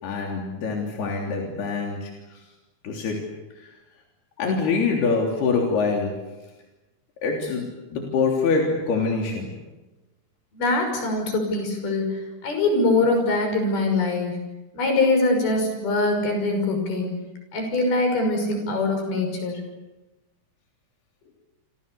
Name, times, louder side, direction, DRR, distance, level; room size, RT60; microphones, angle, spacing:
voice 1, 0.0-2.4 2.8-3.3 3.6-3.7 4.4-6.2 7.2-9.5, left 4 dB, 90° left, 0 dB, 5.3 m, -25 dB
voice 2, 10.5-14.4 14.7-17.1 17.5-19.6, left 2 dB, 70° left, 5 dB, 7.9 m, -23 dB
28.5 x 26.0 x 7.0 m, 1.1 s
omnidirectional pair, 4.5 m